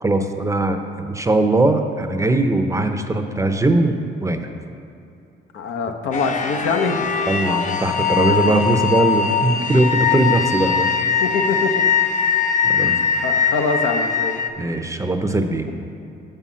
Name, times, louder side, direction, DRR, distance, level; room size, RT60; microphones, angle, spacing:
voice 1, 0.0-4.5 7.3-10.9 12.6-13.0 14.6-15.7, right 2 dB, 15° right, 6 dB, 0.6 m, -20 dB
voice 2, 5.5-7.1 11.2-11.7 12.8-14.4, left 4 dB, 75° left, 4 dB, 0.8 m, -24 dB
sound 1, 6.1-14.5, left 6 dB, 40° left, 0.6 m, -21 dB
6.7 x 5.6 x 7.3 m, 2.6 s
cardioid pair, 90°, 20 cm